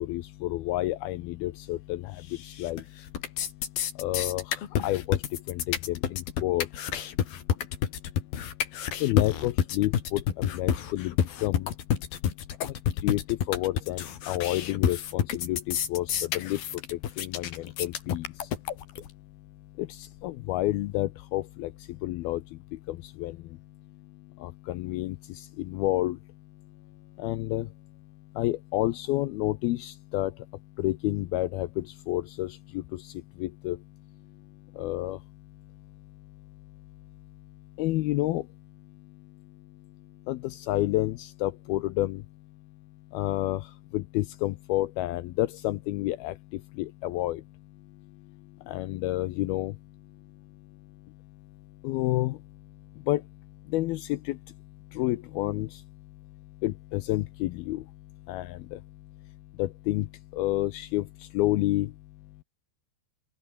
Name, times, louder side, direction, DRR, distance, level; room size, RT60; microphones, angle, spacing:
voice 1, 0.0-2.0 2.6-2.8 4.0-4.4 4.8-5.2 5.5-6.7 9.0-11.1 11.4-11.7 13.0-16.6 16.9-17.5 17.8-18.3 19.8-19.9 20.2-21.7 22.0-22.4 22.9-23.3 24.4-25.2 25.6-26.2 27.2-27.7 28.4-30.3 30.8-32.5 33.4-33.8 34.8-35.2 37.8-38.4 40.3-40.4 40.7-42.2 43.1-43.6 43.9-46.3 46.8-47.4 48.7-49.7 51.8-52.4 53.1-53.2 53.7-54.4 55.0-55.7 56.6-57.8 58.3-58.5 59.6-60.1 60.3-61.0 61.3-61.9, left 17 dB, 85° left, 2.2 m, -29 dB
sound 1, 2.4-2.8 3.1-19.1, left 9 dB, 55° left, 4.0 m, -29 dB
open air
omnidirectional pair, 5.3 m